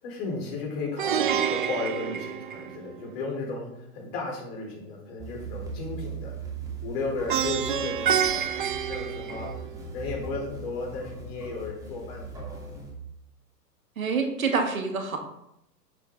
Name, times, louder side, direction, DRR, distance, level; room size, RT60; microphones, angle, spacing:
voice 1, 0.0-6.4 6.8-9.6 9.9-12.3, left 3 dB, 40° left, -1 dB, 4.4 m, -34 dB
Plucked string instrument, 1.0-3.1 7.3-9.9, right 8 dB, 35° right, 0.5 m, -28 dB
sound 1, 5.2-12.9, right 4 dB, 5° right, 2.6 m, -39 dB
voice 2, 14.0-15.2, right 4 dB, 55° right, 4 dB, 1.9 m, -26 dB
11.0 x 7.9 x 3.8 m, 0.81 s
figure-of-eight pair, 115°, 48 cm